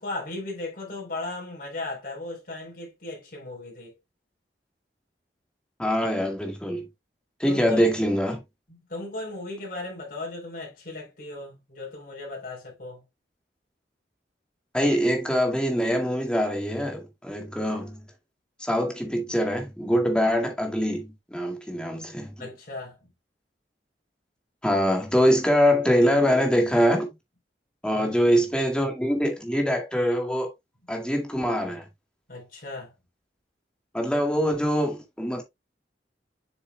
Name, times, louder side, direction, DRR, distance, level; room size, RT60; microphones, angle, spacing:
voice 1, 0.0-3.9 7.5-7.9 8.7-13.0 22.4-23.1 27.9-28.3 32.3-32.9, left 2 dB, 55° left, 3.7 m, -36 dB
voice 2, 5.8-6.9 7.4-8.4 14.7-18.1 18.6-22.5 24.6-27.2 27.8-30.5 30.9-31.9 33.9-35.4, equal, 5° left, 2.1 m, -24 dB
7.3 x 6.9 x 2.2 m
head